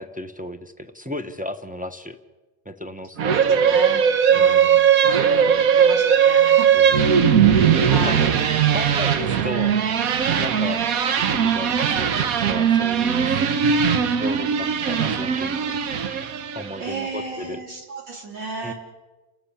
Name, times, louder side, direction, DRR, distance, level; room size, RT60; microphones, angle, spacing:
voice 1, 0.0-2.2 2.6-3.6 4.3-4.7 6.7-7.0 7.7-8.2 8.7-9.8 10.4-10.8 11.2-13.4 14.2-15.8 16.5-17.6 18.6-18.7, left 1 dB, 5° right, 4 dB, 0.7 m, -34 dB
sound 1, 3.2-16.8, right 7 dB, 55° right, 1.3 m, -19 dB
voice 2, 3.2-4.8 5.3-6.8 7.5-8.3 9.3-9.5 10.2-10.5 13.9-14.1 16.8-18.7, right 3 dB, 90° right, 0 dB, 4.7 m, -34 dB
29.0 x 13.5 x 8.7 m, 1.2 s
omnidirectional pair, 1.9 m